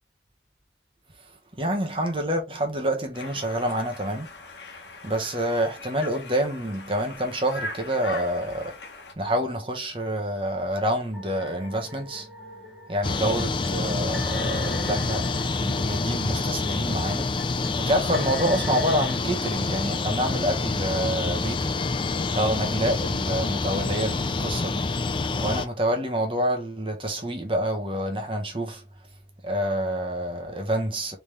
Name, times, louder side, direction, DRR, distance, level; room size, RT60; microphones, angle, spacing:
voice 1, 1.6-4.3 5.0-8.8 9.2-12.3 12.9-15.3 15.6-17.3 17.7-21.8 22.3-24.9 25.2-28.8 29.4-31.2, right 1 dB, 30° right, 1.0 m, -27 dB
Conversation, 3.1-9.1, left 2 dB, 85° left, 1.2 m, -40 dB
sound 1, 11.1-19.1, left 1 dB, ahead, 1.0 m, -42 dB
sound 2, 13.0-25.7, left 3 dB, 30° left, 0.3 m, -27 dB
4.0 x 3.5 x 3.3 m
head